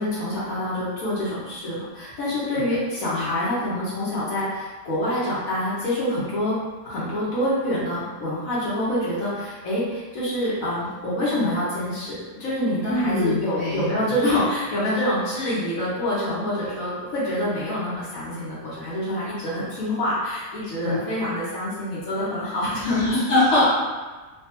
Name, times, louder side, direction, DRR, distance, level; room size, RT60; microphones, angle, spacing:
voice 1, 0.0-6.5 6.8-23.0, left 1 dB, 70° left, -9 dB, 1.3 m, -26 dB
voice 2, 12.8-13.9 20.8-21.0 22.8-23.6, left 2 dB, 55° left, -8 dB, 1.2 m, -22 dB
3.2 x 2.4 x 2.8 m, 1.3 s
omnidirectional pair, 1.5 m